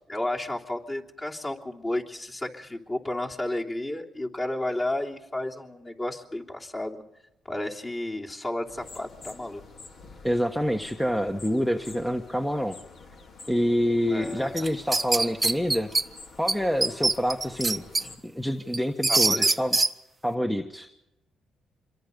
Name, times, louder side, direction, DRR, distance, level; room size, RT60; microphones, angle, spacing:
voice 1, 0.1-7.0 7.4-9.6 14.0-14.7 19.1-19.5, left 1 dB, 25° left, -1 dB, 3.2 m, -32 dB
sound 1, 8.6-18.2, left 4 dB, 60° left, 4.2 m, -48 dB
voice 2, 10.2-12.7 13.5-15.9 16.4-17.8 18.2-19.8 20.2-20.9, equal, 5° left, 5 dB, 1.4 m, -27 dB
sound 2, 14.6-16.0 16.5-16.6 16.8-18.0 18.4-19.9, right 3 dB, 20° right, 1.0 m, -23 dB
26.5 x 22.5 x 5.4 m, 0.89 s
cardioid pair, 90°, 0 cm